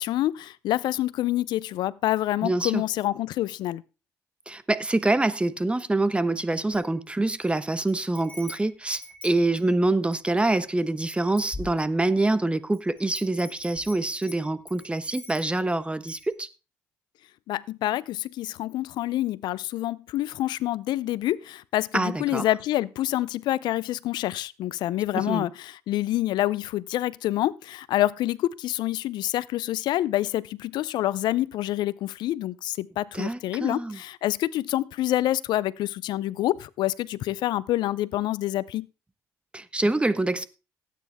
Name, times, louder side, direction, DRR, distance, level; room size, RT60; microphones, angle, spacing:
voice 1, 0.0-3.8 17.5-38.9, left 14 dB, 75° left, 0.5 m, -27 dB
voice 2, 2.4-2.8 4.5-16.5 21.9-22.5 25.1-25.5 33.1-34.0 39.5-40.4, right 2 dB, 15° right, 1.2 m, -25 dB
Wind chime, 6.7-7.5 7.9-10.3 10.8-10.9 11.1-12.2 12.7-15.7 16.1-16.3, left 2 dB, 20° left, 4.4 m, -43 dB
17.0 x 9.3 x 3.5 m
supercardioid pair, 65°, 8 cm